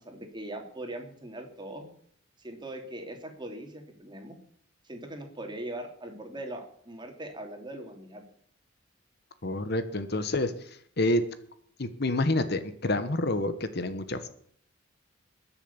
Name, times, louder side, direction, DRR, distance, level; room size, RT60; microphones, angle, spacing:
voice 1, 0.0-1.9 2.4-4.4 4.8-8.2, right 1 dB, 20° right, 4 dB, 3.0 m, -40 dB
voice 2, 9.4-10.5 11.0-11.2 11.8-14.3, left 2 dB, 55° left, 11 dB, 1.2 m, -28 dB
21.5 x 7.2 x 7.0 m, 0.63 s
head